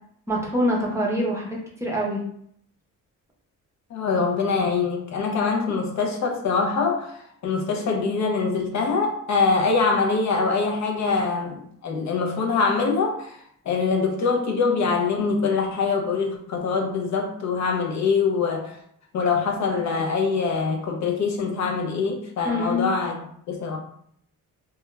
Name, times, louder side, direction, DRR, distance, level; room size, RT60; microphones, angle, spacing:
voice 1, 0.3-2.2 22.5-22.9, equal, 10° right, -3 dB, 0.6 m, -25 dB
voice 2, 3.9-13.4 13.7-18.8 19.1-23.1 23.5-23.8, left 4 dB, 60° left, 2 dB, 0.5 m, -24 dB
2.2 x 2.2 x 3.0 m, 0.67 s
cardioid pair, 130°, 32 cm